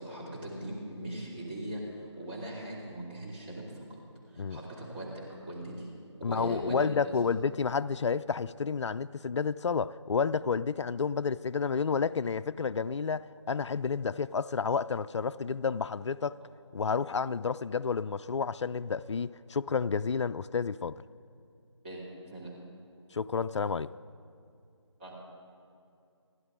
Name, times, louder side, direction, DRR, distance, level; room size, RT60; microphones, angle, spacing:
voice 1, 0.0-4.0 4.3-5.9 6.3-6.9 7.2-7.4 16.4-16.5 21.8-22.5 25.0-25.1, right 1 dB, 20° right, 2.7 m, -40 dB
voice 2, 6.2-16.4 16.7-21.0 23.1-23.9, left 5 dB, 70° left, 0.4 m, -30 dB
29.5 x 11.0 x 3.7 m
figure-of-eight pair, 165°, 16 cm